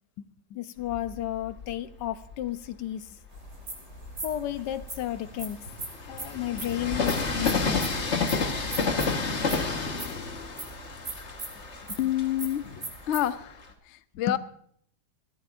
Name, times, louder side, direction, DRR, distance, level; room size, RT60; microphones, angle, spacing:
voice 1, 0.5-3.2 4.2-5.6 6.1-7.8 11.9-12.0 14.3-14.4, left 12 dB, 85° left, 1.3 m, -33 dB
Train, 0.8-2.5 3.1-13.7, left 4 dB, 45° left, 1.6 m, -31 dB
sound 1, 3.3-13.3, right 3 dB, 85° right, 4.1 m, -40 dB
voice 2, 12.0-13.6 13.9-14.4, left 12 dB, 65° left, 0.7 m, -28 dB
21.5 x 15.0 x 2.5 m
omnidirectional pair, 1.8 m